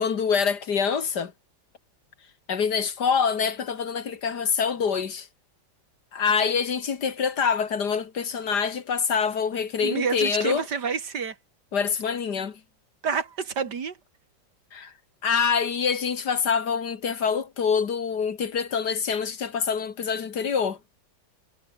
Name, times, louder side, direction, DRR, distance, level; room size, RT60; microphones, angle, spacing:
voice 1, 0.0-1.3 2.5-5.3 6.1-10.7 11.7-12.6 14.7-14.9 15.2-20.8, left 6 dB, 60° left, 2.1 m, -25 dB
voice 2, 9.8-11.4 13.0-14.0, right 6 dB, 60° right, 2.5 m, -28 dB
omnidirectional pair, 2.1 m